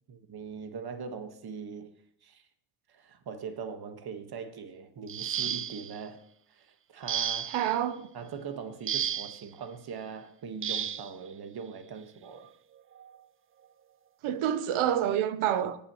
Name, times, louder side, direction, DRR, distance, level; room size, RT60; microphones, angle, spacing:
voice 1, 0.1-1.9 2.2-2.4 2.9-6.2 6.5-7.5 8.1-12.5, right 6 dB, 50° right, 1.5 m, -41 dB
sound 1, 5.1-6.0 7.1-7.7 8.9-9.4 10.6-11.1 12.3-12.4 13.0-13.2, right 9 dB, 30° right, 0.4 m, -32 dB
voice 2, 7.5-8.1 14.2-15.8, right 10 dB, 80° right, 0.9 m, -28 dB
23.5 x 8.8 x 3.1 m
supercardioid pair, 75°, 49 cm